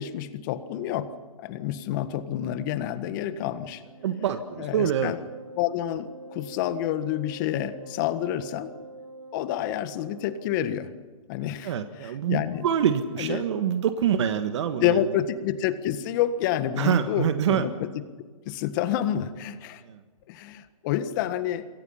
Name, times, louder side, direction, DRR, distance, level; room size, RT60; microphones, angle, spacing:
voice 1, 0.0-3.8 4.6-5.2 5.6-8.7 9.3-10.9 11.3-11.7 12.0-12.6 13.2-13.4 14.8-18.0 18.4-19.8 20.3-21.7, left 11 dB, 35° left, 11 dB, 1.6 m, -28 dB
Wind instrument woodwind instrument, 3.8-10.8, right 2 dB, 70° right, 5.0 m, -45 dB
voice 2, 4.0-5.1 11.6-15.0 16.8-17.7 19.8-20.0, right 9 dB, 55° right, 8 dB, 1.6 m, -25 dB
28.0 x 23.0 x 5.7 m, 1.4 s
hypercardioid pair, 150°, 18 cm